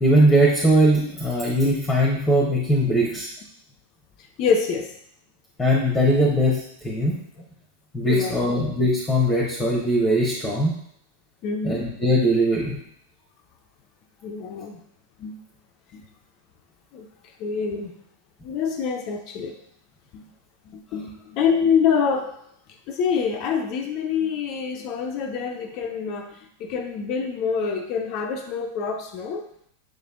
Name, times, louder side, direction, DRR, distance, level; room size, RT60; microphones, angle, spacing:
voice 1, 0.0-3.3 5.6-7.2 7.9-10.7 11.6-12.8, equal, 10° left, -3 dB, 0.8 m, -20 dB
voice 2, 4.4-4.9 8.1-8.4 11.4-11.8 14.2-14.8 15.2-15.4 15.9-16.0 16.9-17.1 17.4-17.9 18.4-19.5 20.1-20.2 20.7-22.3 22.9-26.3 26.6-29.4, left 6 dB, 40° left, 5 dB, 0.4 m, -26 dB
6.4 x 3.2 x 2.4 m, 0.70 s
figure-of-eight pair, 90°, 0 cm